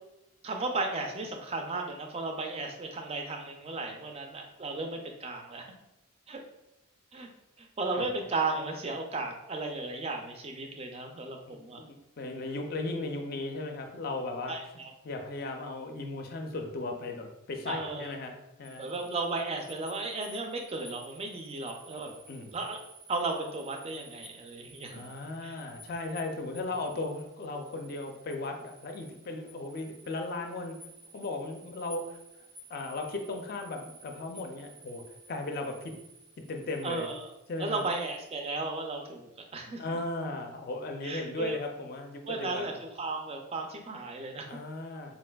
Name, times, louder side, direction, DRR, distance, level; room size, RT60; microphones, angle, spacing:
voice 1, 0.4-5.6 6.3-6.4 7.1-7.3 7.6-11.8 14.5-14.9 17.7-18.1 18.8-22.1 22.5-22.8 23.1-25.0 25.4-25.5 36.8-37.3 37.6-40.0 41.0-41.6 42.3-42.7 43.0-44.5, right 3 dB, 30° right, 3 dB, 0.3 m, -35 dB
voice 2, 11.5-14.6 15.0-18.8 22.1-22.5 24.9-30.8 31.1-32.2 32.7-35.9 36.5-37.1 37.5-37.8 39.8-42.7 44.4-45.1, left 2 dB, 45° left, 4 dB, 0.4 m, -36 dB
sound 1, 18.6-38.5, right 1 dB, 85° right, 0.9 m, -54 dB
3.9 x 2.5 x 2.2 m, 0.89 s
head